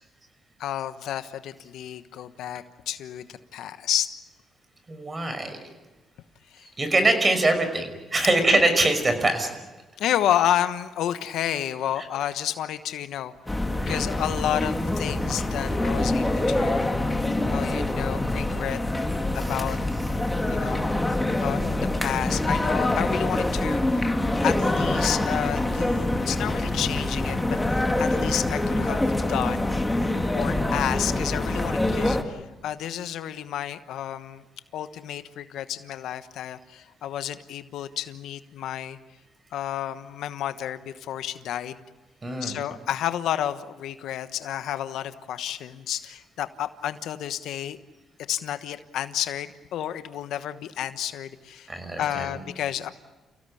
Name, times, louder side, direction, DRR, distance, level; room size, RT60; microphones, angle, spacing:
voice 1, 0.6-4.1 6.5-6.7 10.0-13.3 13.9-16.9 17.5-18.8 19.3-19.8 20.4-20.8 21.4-24.1 24.4-29.8 30.3-34.4 34.7-39.0 39.5-41.8 42.4-47.8 48.3-51.7 52.0-52.9, left 11 dB, 80° left, 11 dB, 1.2 m, -30 dB
voice 2, 4.9-5.6 6.8-9.6 13.8-13.9 19.4-19.5 30.5-30.9 42.2-42.5 51.7-52.4, right 2 dB, 25° right, 8 dB, 5.7 m, -23 dB
sound 1, 13.5-32.2, left 1 dB, 10° left, 2.3 m, -25 dB
29.5 x 17.0 x 9.9 m, 1.2 s
cardioid pair, 90°, 0 cm